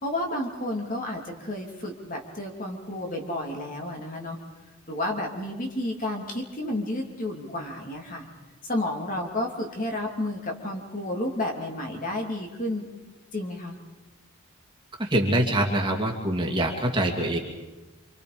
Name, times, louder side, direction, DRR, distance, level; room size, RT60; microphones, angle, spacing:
voice 1, 0.0-4.4 4.9-8.3 8.6-12.9 13.3-13.8, left 1 dB, 35° left, 1 dB, 3.0 m, -31 dB
voice 2, 15.0-17.4, right 1 dB, 20° right, 0 dB, 2.4 m, -24 dB
27.5 x 26.5 x 5.2 m, 1.2 s
head